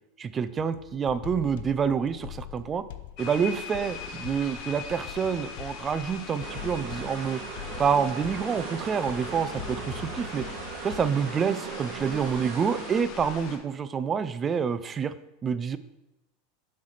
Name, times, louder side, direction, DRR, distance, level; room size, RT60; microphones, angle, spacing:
voice 1, 0.2-2.9 3.2-7.4 7.8-10.5 10.8-15.1 15.4-15.8, right 6 dB, 20° right, 14 dB, 0.3 m, -27 dB
sound 1, 0.6-11.2, left 11 dB, 75° left, 0.4 m, -43 dB
sound 2, 3.2-13.6, left 6 dB, 45° left, 0.9 m, -41 dB
sound 3, 6.4-13.0, right 8 dB, 50° right, 0.7 m, -39 dB
7.6 x 3.2 x 5.7 m, 0.95 s
supercardioid pair, 150°, 0 cm